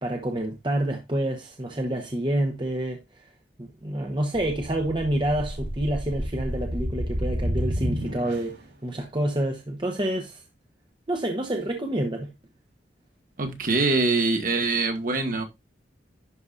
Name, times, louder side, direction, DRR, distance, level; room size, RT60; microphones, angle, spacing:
voice 1, 0.0-3.0 3.6-8.6 8.8-10.4 11.1-12.3, right 1 dB, 25° right, 1.0 m, -28 dB
sound 1, 4.3-8.7, equal, 65° right, 3.8 m, -30 dB
voice 2, 13.4-15.4, right 3 dB, 50° right, 1.5 m, -24 dB
11.0 x 4.8 x 2.5 m
head